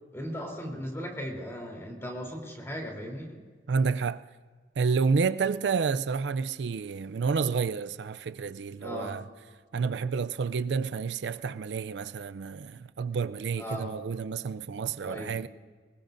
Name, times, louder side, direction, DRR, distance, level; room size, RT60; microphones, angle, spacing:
voice 1, 0.1-3.4 8.8-9.2 13.6-13.9 15.0-15.4, equal, 15° left, 3.4 m, -37 dB
voice 2, 3.7-4.2 4.8-9.2 9.7-15.5, right 5 dB, 75° right, 0.4 m, -29 dB
24.0 x 20.5 x 2.6 m
head